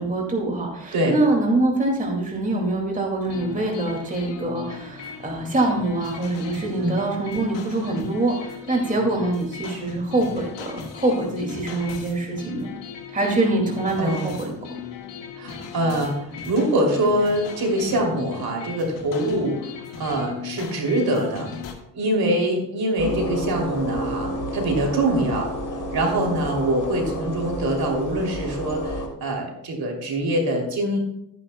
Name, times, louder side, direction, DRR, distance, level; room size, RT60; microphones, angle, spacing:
voice 1, 0.0-12.7 13.1-14.5, right 2 dB, 15° right, 0 dB, 2.3 m, -24 dB
sound 1, 3.2-21.7, left 7 dB, 75° left, 1.7 m, -37 dB
voice 2, 14.0-14.3 15.4-16.1 16.5-19.6 19.9-21.5 21.9-25.5 25.9-31.0, right 1 dB, 55° right, 1 dB, 3.0 m, -24 dB
sound 2, 23.0-29.1, equal, 45° left, 3.2 m, -30 dB
13.5 x 9.7 x 2.3 m, 0.78 s
cardioid pair, 85°, 44 cm